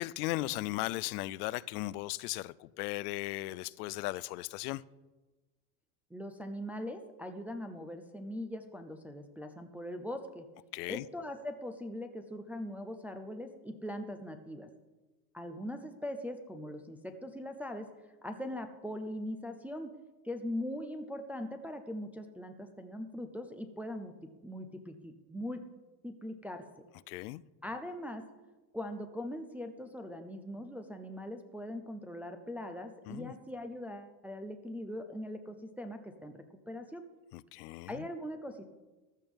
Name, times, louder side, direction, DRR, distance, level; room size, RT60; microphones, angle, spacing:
voice 1, 0.0-4.8 10.7-11.1 27.1-27.4 33.1-33.3 37.3-38.1, left 19 dB, 75° left, 0.5 m, -37 dB
voice 2, 6.1-10.5 10.9-14.7 15.3-17.9 18.2-19.9 20.2-25.7 26.0-26.7 27.6-28.3 28.7-37.1 37.9-38.6, left 1 dB, 5° right, 0.3 m, -41 dB
14.5 x 11.5 x 3.6 m
supercardioid pair, 130°, 47 cm